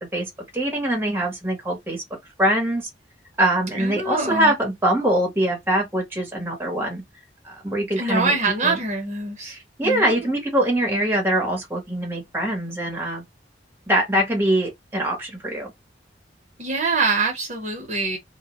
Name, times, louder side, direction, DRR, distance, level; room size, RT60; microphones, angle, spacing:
voice 1, 0.0-2.0 2.4-2.9 3.4-7.0 7.4-8.3 8.6-8.8 9.4-13.2 13.9-15.7, right 1 dB, 15° right, 0.9 m, -23 dB
voice 2, 3.7-4.5 8.0-9.6 9.8-10.3 16.6-18.2, right 3 dB, 40° right, 0.8 m, -24 dB
2.1 x 2.1 x 2.9 m
head